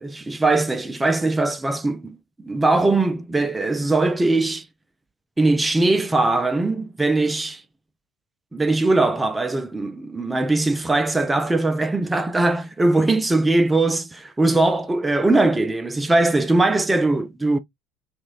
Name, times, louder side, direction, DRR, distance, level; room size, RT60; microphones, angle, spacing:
voice 1, 0.0-2.2 2.4-4.7 5.4-7.6 8.5-17.6, right 2 dB, 10° right, 0.4 m, -20 dB
3.0 x 2.4 x 2.5 m
figure-of-eight pair, 65°, 0 cm